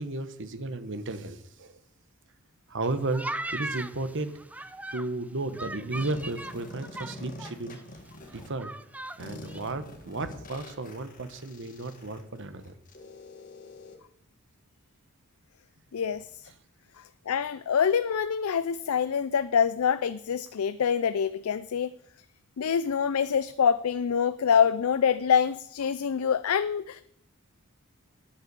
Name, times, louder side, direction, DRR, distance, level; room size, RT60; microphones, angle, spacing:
voice 1, 0.0-1.8 2.7-3.2 3.5-4.3 4.9-7.8 8.3-8.7 9.2-12.7, right 2 dB, 55° right, 10 dB, 1.1 m, -34 dB
sound 1, 2.8-5.1 5.5-7.5 7.8-7.9 8.1-9.2 9.5-9.7, right 2 dB, 5° right, 0.4 m, -38 dB
sound 2, 5.9-8.5 9.2-13.9, left 2 dB, 35° left, 1.8 m, -46 dB
voice 2, 15.9-16.3 17.3-21.9 22.6-27.0, left 7 dB, 75° left, 14 dB, 0.4 m, -25 dB
9.9 x 8.7 x 6.8 m, 0.69 s
head